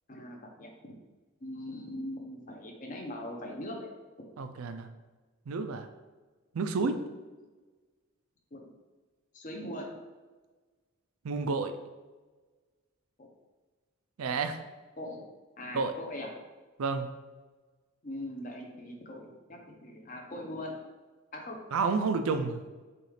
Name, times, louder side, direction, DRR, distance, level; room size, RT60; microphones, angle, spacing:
voice 1, 0.1-0.7 1.4-3.9 4.2-4.3 6.8-7.0 8.5-8.7 9.3-9.9 13.2-13.3 15.0-15.3 15.6-16.3 18.0-20.8 21.3-21.6, left 1 dB, 35° left, 1 dB, 0.7 m, -41 dB
voice 2, 4.4-4.9 5.5-5.9 6.5-6.9 11.2-11.7 14.2-14.6 15.7-15.9 16.8-17.1 21.7-22.6, right 4 dB, 80° right, 8 dB, 0.4 m, -30 dB
6.7 x 2.4 x 3.2 m, 1.3 s
head